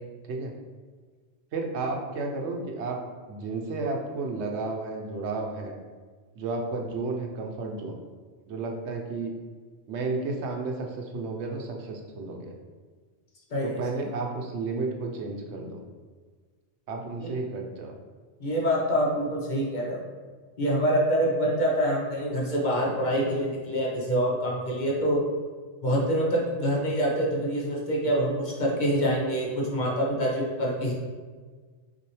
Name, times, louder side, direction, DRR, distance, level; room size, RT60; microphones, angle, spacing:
voice 1, 1.5-3.0 3.3-5.8 6.4-8.0 8.5-9.3 9.9-12.5 13.6-15.8 16.9-18.0, right 3 dB, 80° right, 2 dB, 0.9 m, -32 dB
voice 2, 13.5-14.1 17.2-17.3 18.4-20.0 20.6-25.2 25.8-30.9, equal, 45° left, -3 dB, 0.9 m, -26 dB
5.7 x 2.7 x 3.1 m, 1.5 s
omnidirectional pair, 1.1 m